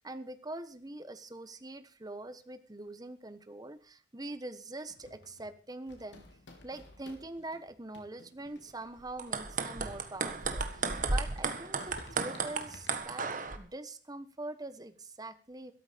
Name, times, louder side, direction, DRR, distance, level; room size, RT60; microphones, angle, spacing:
voice 1, 0.0-6.2 6.6-13.3 13.5-15.7, right 2 dB, 20° right, 11 dB, 1.2 m, -43 dB
sound 1, 4.9-13.0, left 1 dB, 90° left, 3.4 m, -55 dB
sound 2, 9.1-13.6, right 4 dB, 50° right, 1.6 m, -34 dB
13.0 x 13.0 x 5.2 m, 0.39 s
head